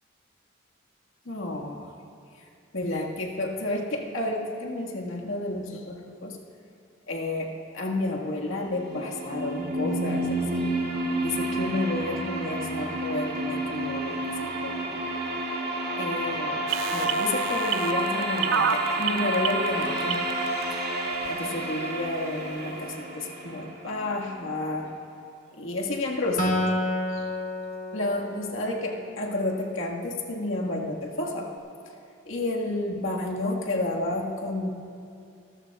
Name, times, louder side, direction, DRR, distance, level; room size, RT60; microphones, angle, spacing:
voice 1, 1.3-1.9 2.7-6.4 7.1-10.7 11.2-15.0 16.0-16.6 16.9-20.3 20.7-20.8 21.3-24.9 25.5-26.8 27.1-27.3 27.9-31.6 32.3-34.7, left 2 dB, 80° left, -1 dB, 1.7 m, -31 dB
sound 1, 8.6-24.6, right 1 dB, 50° right, 2.3 m, -30 dB
sound 2, 16.7-20.6 21.2-21.3, right 8 dB, 75° right, 0.6 m, -28 dB
Acoustic guitar, 26.4-29.8, left 1 dB, 40° left, 1.2 m, -30 dB
25.5 x 14.0 x 2.4 m, 2.5 s
head